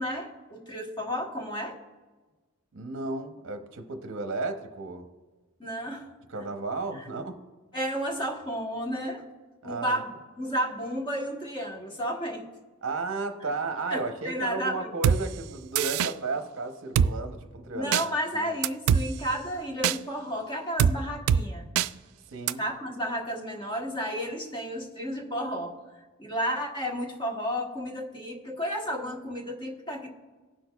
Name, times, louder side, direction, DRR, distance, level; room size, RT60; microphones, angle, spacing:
voice 1, 0.0-1.8 5.6-6.1 6.9-7.0 7.7-9.2 9.6-10.1 10.4-12.5 13.9-14.9 17.7-21.7 22.6-25.7 26.2-30.1, equal, 20° left, 1.0 m, -32 dB
voice 2, 2.7-5.1 6.3-7.4 9.6-10.0 12.8-18.0 18.3-18.5 22.3-22.6, right 3 dB, 55° right, 0.7 m, -33 dB
Drum kit, 15.0-15.2 15.8-16.1 17.0-17.1 17.9-18.0 18.6-19.0 19.8-20.0 20.8-20.9 21.3-21.4 21.8-21.9 22.5-22.6, right 8 dB, 85° right, 0.3 m, -22 dB
18.5 x 6.3 x 2.3 m
head